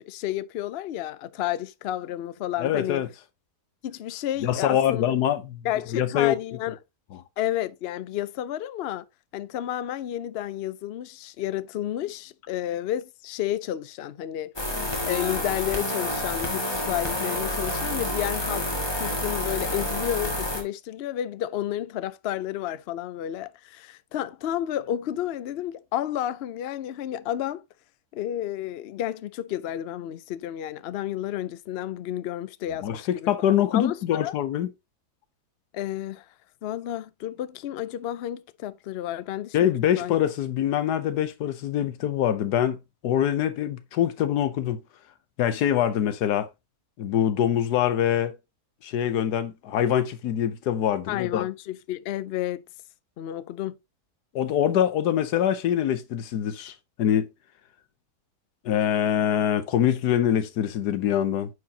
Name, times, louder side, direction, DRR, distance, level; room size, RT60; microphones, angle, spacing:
voice 1, 0.1-3.0 3.8-5.1 5.6-6.8 7.4-9.1 9.3-14.5 15.0-18.6 19.0-27.6 28.1-33.3 33.7-34.3 35.7-36.3 36.6-39.7 40.0-40.2 51.1-52.6 53.2-53.8, left 12 dB, 65° left, 0.6 m, -31 dB
voice 2, 2.6-3.1 4.4-5.6 5.9-6.4 32.8-34.7 39.5-44.8 45.4-46.5 47.0-48.3 48.8-51.5 54.3-57.3 58.6-61.5, left 10 dB, 90° left, 1.4 m, -24 dB
sound 1, 14.6-20.6, left 1 dB, 15° left, 1.8 m, -29 dB
9.5 x 4.8 x 2.8 m
omnidirectional pair, 1.7 m